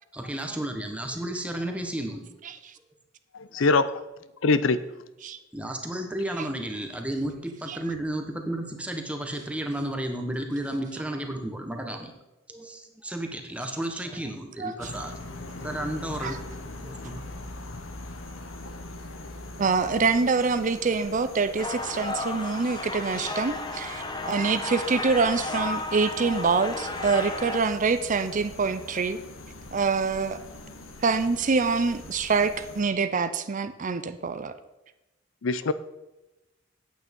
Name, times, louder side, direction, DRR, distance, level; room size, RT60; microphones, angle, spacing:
voice 1, 0.1-2.3 5.5-12.1 12.5-15.1 15.5-16.4 16.8-17.3, right 1 dB, 5° right, 4 dB, 1.1 m, -32 dB
voice 2, 3.3-3.9 4.4-4.8 35.4-35.7, left 3 dB, 75° left, 14 dB, 0.5 m, -22 dB
voice 3, 14.6-14.9 16.2-16.3 19.6-29.2 29.7-30.4 31.0-34.5, right 4 dB, 40° right, 12 dB, 0.5 m, -25 dB
sound 1, 14.8-32.8, left 2 dB, 90° left, 1.3 m, -42 dB
sound 2, 21.6-27.6, left 2 dB, 25° left, 1.0 m, -33 dB
8.9 x 8.4 x 5.3 m, 0.99 s
head